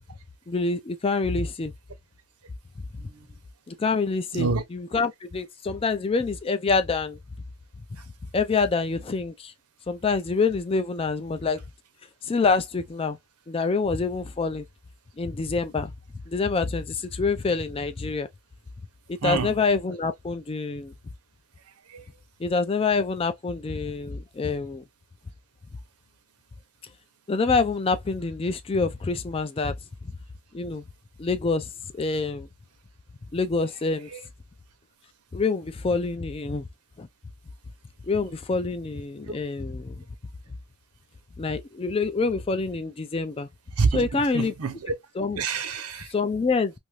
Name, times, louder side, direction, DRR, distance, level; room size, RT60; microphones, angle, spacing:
voice 1, 0.5-1.7 3.7-7.2 8.3-9.5 9.9-11.6 12.2-13.2 13.5-14.7 15.2-15.9 16.3-18.3 19.2-20.9 22.4-24.8 27.3-29.8 30.5-30.9 31.2-32.5 33.3-34.1 35.3-36.6 37.0-37.1 38.1-40.0 41.4-43.5 43.9-44.5 45.2-45.5 46.1-46.7, left 4 dB, 25° left, 0.3 m, -26 dB
voice 2, 19.2-19.5 21.9-22.0 34.1-34.2 43.8-44.9 45.4-46.1, right 4 dB, 85° right, 0.7 m, -27 dB
2.7 x 2.6 x 3.0 m
head